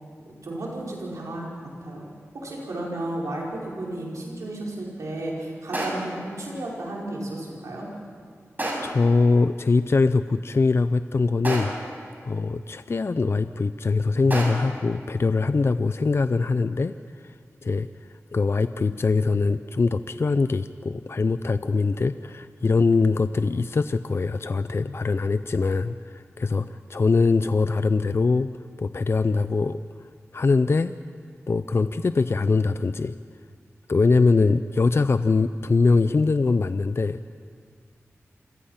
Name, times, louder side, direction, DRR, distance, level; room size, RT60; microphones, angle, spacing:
voice 1, 0.3-1.5 1.8-2.0 2.3-7.9, right 1 dB, 85° right, -3 dB, 5.2 m, -33 dB
sound 1, 5.7-6.2 8.6-9.1 11.4-12.0 14.3-14.8, right 1 dB, 35° right, 6.1 m, -30 dB
voice 2, 8.8-17.9 18.3-28.5 28.8-29.8 30.3-30.9 31.5-33.2 33.9-37.2, left 4 dB, 50° left, 12 dB, 0.5 m, -22 dB
27.5 x 17.5 x 5.8 m, 2.1 s
cardioid pair, 55°, 5 cm